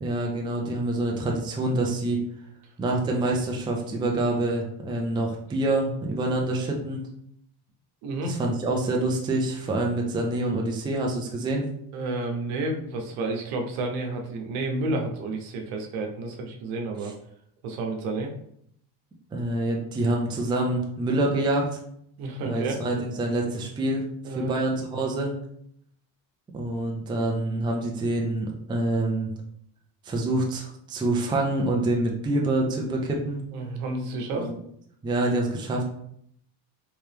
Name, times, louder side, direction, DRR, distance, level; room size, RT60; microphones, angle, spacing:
voice 1, 0.0-2.2 2.8-7.0 8.3-11.6 19.3-21.7 22.4-24.1 24.3-25.3 26.5-29.3 30.0-33.4 34.3-34.5 35.0-35.9, right 2 dB, 10° right, 0 dB, 0.3 m, -26 dB
voice 2, 8.0-8.4 11.9-17.1 17.6-18.3 22.2-22.8 24.2-24.5 33.5-34.5, right 2 dB, 80° right, 2 dB, 0.9 m, -30 dB
3.3 x 2.8 x 3.3 m, 0.70 s
cardioid pair, 135°, 48 cm